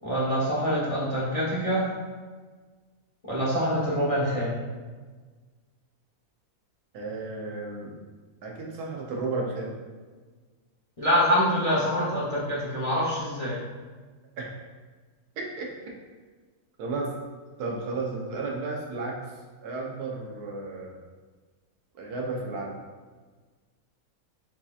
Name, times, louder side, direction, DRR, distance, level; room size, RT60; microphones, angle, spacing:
voice 1, 0.0-1.9 3.2-4.6 11.0-13.6, equal, 30° left, -8 dB, 0.7 m, -25 dB
voice 2, 6.9-8.0 8.4-9.7 14.4-14.6 15.4-15.7 16.8-17.1 17.6-19.2 19.6-20.9 21.9-22.7, right 3 dB, 90° right, -1 dB, 1.4 m, -33 dB
7.3 x 2.8 x 2.4 m, 1.4 s
omnidirectional pair, 1.6 m